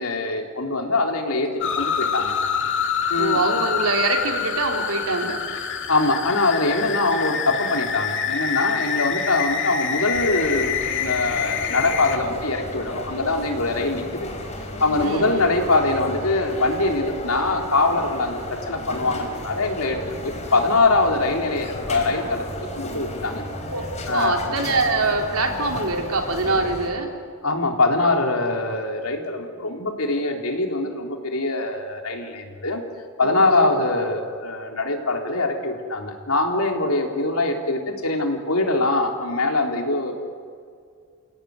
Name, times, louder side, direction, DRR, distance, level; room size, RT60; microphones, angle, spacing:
voice 1, 0.0-1.5 1.8-2.3 3.1-3.4 5.9-14.3 14.8-22.5 22.8-23.4 24.1-24.4 27.4-32.8 33.2-40.1, left 2 dB, 75° left, 3 dB, 3.6 m, -23 dB
sound 1, 1.6-12.2, left 7 dB, 55° left, 2.2 m, -26 dB
voice 2, 3.2-5.4 15.0-15.5 22.6-22.7 23.7-23.8 24.1-27.1 33.2-33.7, right 2 dB, 70° right, 3 dB, 3.7 m, -24 dB
sound 2, 10.1-26.9, left 1 dB, 30° left, 3.9 m, -34 dB
30.0 x 17.0 x 9.6 m, 2.2 s
head